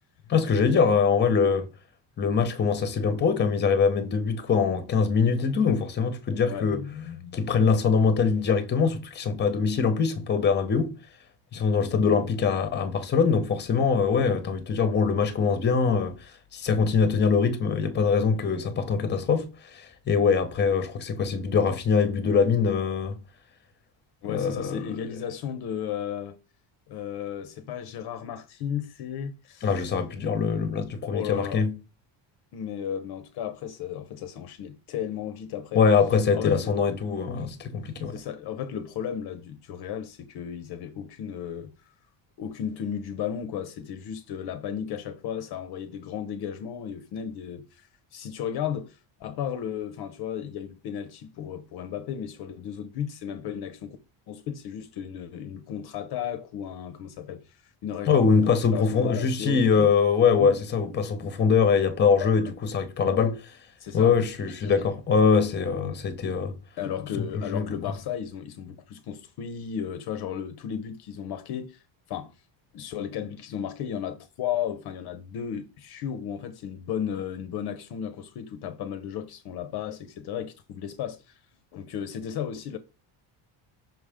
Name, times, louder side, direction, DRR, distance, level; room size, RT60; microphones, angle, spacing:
voice 1, 0.3-1.7 2.2-6.8 7.3-10.9 11.5-23.2 24.2-24.9 29.6-31.7 35.7-38.1 58.1-63.5 63.9-66.5 67.3-67.8, left 5 dB, 20° left, 0.8 m, -23 dB
voice 2, 6.4-7.4 24.2-26.4 26.9-29.7 31.1-31.6 32.5-35.8 36.3-36.7 38.1-41.7 42.4-54.0 54.3-59.9 60.4-60.6 62.2-62.4 63.8-64.2 64.5-64.8 66.8-71.8 72.1-72.4 72.7-81.4 81.7-82.8, left 9 dB, 55° left, 0.7 m, -34 dB
6.1 x 4.9 x 3.5 m
cardioid pair, 170°, 48 cm